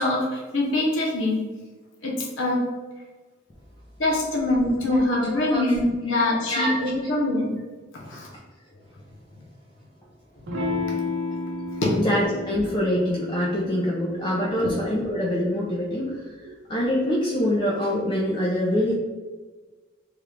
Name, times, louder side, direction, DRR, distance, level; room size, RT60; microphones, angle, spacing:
voice 1, 0.0-1.5 2.0-2.7 4.0-7.6 7.9-8.3 9.3-9.4 11.8-12.0 14.6-14.7, left 1 dB, 80° left, -2 dB, 0.8 m, -24 dB
voice 2, 4.8-5.7 6.1-6.2 6.5-6.7 8.0-8.1 11.9-16.3 16.7-18.9, equal, 25° left, -4 dB, 0.4 m, -25 dB
Electric guitar / Strum, 10.5-15.6, left 3 dB, 80° right, 0.8 m, -32 dB
3.6 x 2.3 x 3.2 m, 1.3 s
head